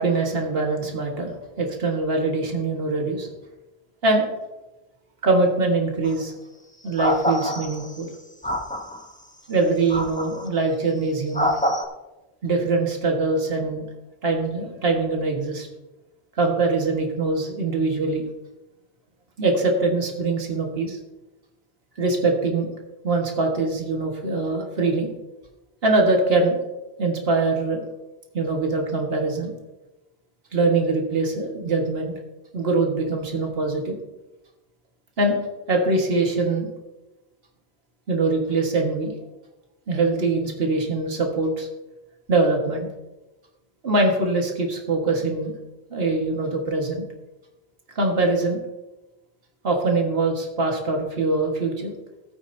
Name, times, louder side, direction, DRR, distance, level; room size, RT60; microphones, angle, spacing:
voice 1, 0.0-3.3 4.0-4.3 5.2-6.3 6.8-8.1 9.5-11.5 12.4-13.9 14.2-15.7 16.4-18.2 19.4-21.0 22.0-22.7 23.0-25.1 25.8-26.6 27.0-27.8 28.3-29.5 30.5-32.1 32.5-34.0 35.2-35.4 35.7-36.7 38.1-39.1 39.9-41.7 42.3-42.9 43.8-45.6 45.9-47.0 48.0-48.6 49.6-51.9, right 3 dB, 70° right, 1 dB, 1.9 m, -23 dB
sound 1, 6.0-6.2 7.0-8.0 8.4-9.0 9.9-10.5 11.3-11.8, equal, 10° left, 0.9 m, -25 dB
17.0 x 8.9 x 2.7 m, 1.1 s
omnidirectional pair, 1.1 m